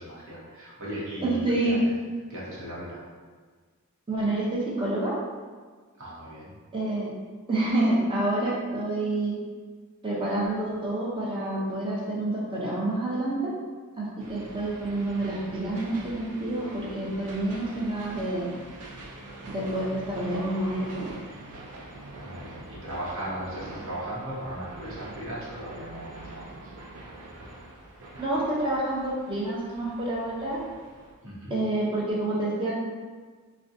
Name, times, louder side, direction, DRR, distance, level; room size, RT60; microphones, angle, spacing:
voice 1, 0.0-1.9 2.3-3.0 6.0-6.6 22.2-26.5 31.2-31.6, right 1 dB, 60° right, -7 dB, 1.0 m, -37 dB
voice 2, 1.2-1.8 4.1-5.1 6.7-7.1 7.5-9.4 10.0-13.5 14.0-18.5 19.4-21.2 28.2-30.6 31.5-32.8, right 2 dB, 20° right, -5 dB, 0.6 m, -28 dB
sound 1, 14.2-31.1, right 2 dB, 90° right, 0.5 m, -44 dB
3.6 x 2.2 x 2.6 m, 1.5 s
head